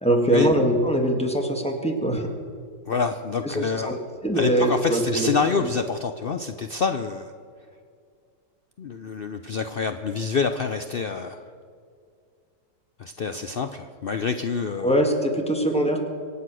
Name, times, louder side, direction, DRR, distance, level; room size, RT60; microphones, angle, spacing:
voice 1, 0.0-2.3 3.4-3.9 4.2-5.3 5.6-5.7 14.8-16.0, right 1 dB, 5° left, 3 dB, 1.7 m, -22 dB
voice 2, 2.9-4.0 4.3-7.3 8.8-11.5 13.0-15.0, left 5 dB, 75° left, 8 dB, 0.5 m, -27 dB
25.5 x 8.6 x 6.2 m, 2.2 s
omnidirectional pair, 1.8 m